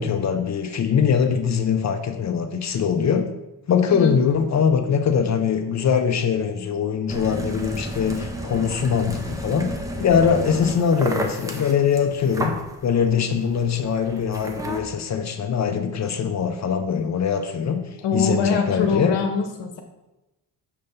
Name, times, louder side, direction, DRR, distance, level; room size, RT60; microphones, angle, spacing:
voice 1, 0.0-3.3 3.7-17.8 18.1-19.2, left 7 dB, 40° left, 7 dB, 0.5 m, -22 dB
sound 1, 7.1-14.8, right 1 dB, 10° right, 0.6 m, -32 dB
voice 2, 18.0-19.8, left 5 dB, 75° left, 5 dB, 0.9 m, -23 dB
6.6 x 3.4 x 5.3 m, 1.0 s
cardioid pair, 145°, 43 cm